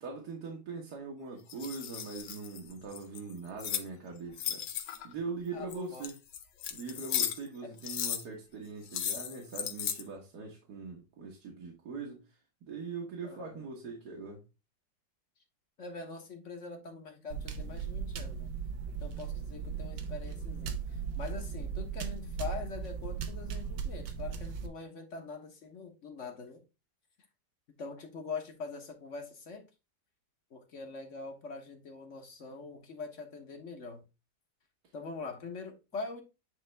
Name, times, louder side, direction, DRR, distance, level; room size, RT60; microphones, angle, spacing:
voice 1, 0.0-4.6 5.0-6.2 6.7-12.4 12.7-14.4, right 4 dB, 65° right, 1.9 m, -41 dB
sound 1, 1.5-3.9 4.3-5.1 5.7-7.5 7.8-8.2 8.9-10.0, left 9 dB, 85° left, 1.5 m, -35 dB
voice 2, 5.5-6.1 7.6-7.7 13.2-13.7 15.8-18.5 19.0-26.6 27.8-29.7 30.5-34.0 34.9-36.2, left 4 dB, 50° left, 1.3 m, -43 dB
sound 2, 17.3-24.7, right 6 dB, 80° right, 1.5 m, -37 dB
9.4 x 3.4 x 3.3 m
omnidirectional pair, 1.9 m